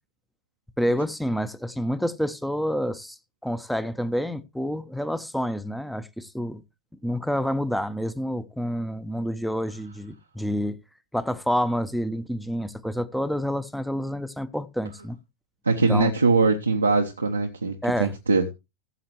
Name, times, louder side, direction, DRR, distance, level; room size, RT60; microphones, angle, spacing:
voice 1, 0.8-6.6 7.0-10.8 11.1-15.2 15.9-16.1 17.8-18.2, equal, ahead, 0.8 m, -28 dB
voice 2, 15.6-18.4, right 3 dB, 80° right, 0.9 m, -22 dB
15.0 x 7.5 x 3.0 m
figure-of-eight pair, 85°, 0 cm